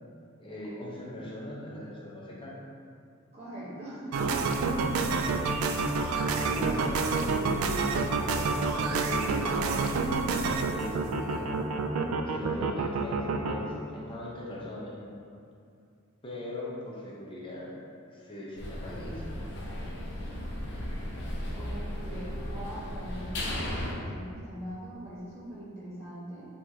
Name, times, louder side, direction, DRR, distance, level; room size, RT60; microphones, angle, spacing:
voice 1, 0.4-2.6 6.3-11.6 12.2-15.3 16.2-17.8 18.1-19.3, left 1 dB, 25° left, -5 dB, 0.7 m, -40 dB
voice 2, 3.3-4.4 21.5-26.5, right 1 dB, 30° right, -11 dB, 1.3 m, -42 dB
sound 1, 4.1-13.5, right 4 dB, 80° right, 0.3 m, -28 dB
sound 2, 18.6-23.9, left 1 dB, 55° left, 0.7 m, -35 dB
4.6 x 3.1 x 2.8 m, 2.3 s
head